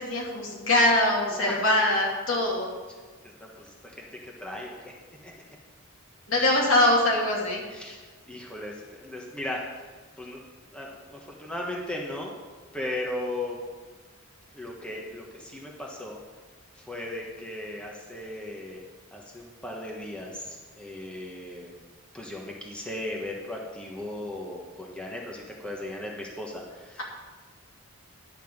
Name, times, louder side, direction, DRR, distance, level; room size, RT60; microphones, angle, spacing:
voice 1, 0.0-2.7 6.3-7.6, left 1 dB, 70° left, -2 dB, 2.7 m, -23 dB
voice 2, 3.2-4.9 5.2-5.3 6.4-6.5 7.7-9.9 10.2-10.4 10.7-12.3 12.7-13.6 14.5-16.2 16.7-18.8 19.1-21.7 22.1-27.0, left 1 dB, 5° left, -2 dB, 1.2 m, -37 dB
10.5 x 5.8 x 7.2 m, 1.4 s
head